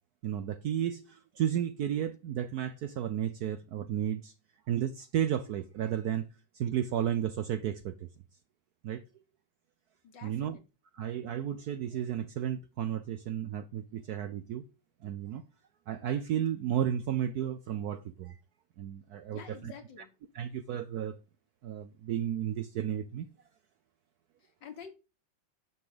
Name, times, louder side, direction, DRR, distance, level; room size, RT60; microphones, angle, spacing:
voice 1, 0.2-4.3 4.7-6.3 6.5-8.1 8.8-9.0 10.2-10.6 11.0-14.6 15.0-15.4 15.9-18.3 18.8-19.7 20.3-21.2 21.6-23.3, right 10 dB, 70° right, 0.9 m, -33 dB
voice 2, 10.0-10.6 19.3-20.1 24.4-24.9, left 7 dB, 65° left, 2.2 m, -48 dB
9.4 x 6.0 x 5.1 m
omnidirectional pair, 2.1 m